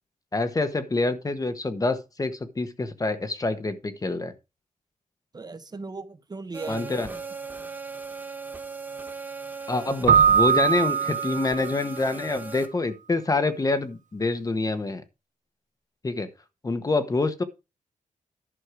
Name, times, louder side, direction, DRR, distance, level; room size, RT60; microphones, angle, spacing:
voice 1, 0.3-4.3 6.7-7.1 9.7-15.0 16.0-16.3 16.6-17.4, left 3 dB, 25° left, 1.1 m, -26 dB
voice 2, 5.3-7.2 9.8-10.1, right 3 dB, 30° right, 1.0 m, -38 dB
sound 1, 6.5-12.7, right 4 dB, 15° right, 1.4 m, -38 dB
Keyboard (musical), 10.1-11.9, right 7 dB, 70° right, 0.5 m, -21 dB
11.0 x 6.4 x 4.9 m
wide cardioid pair, 140°, 14 cm